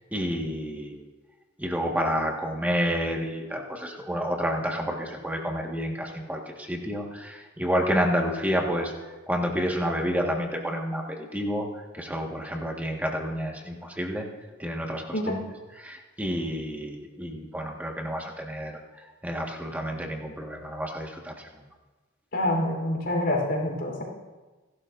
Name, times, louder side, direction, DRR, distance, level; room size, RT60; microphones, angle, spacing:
voice 1, 0.1-0.9 1.6-8.9 9.3-11.7 11.9-14.3 14.6-15.4 15.7-18.8 19.2-21.5, equal, 10° right, 0 dB, 1.5 m, -29 dB
voice 2, 15.1-15.4 22.3-24.0, left 1 dB, 55° left, -1 dB, 3.8 m, -26 dB
29.5 x 12.0 x 2.6 m, 1.2 s
head